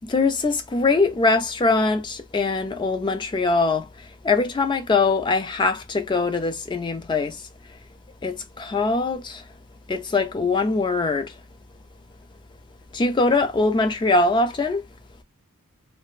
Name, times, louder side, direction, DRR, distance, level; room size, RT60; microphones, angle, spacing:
voice 1, 0.0-3.9 4.2-7.4 8.2-9.4 9.9-11.3 12.9-14.8, left 3 dB, 20° left, 0.3 m, -22 dB
2.3 x 2.1 x 3.0 m
head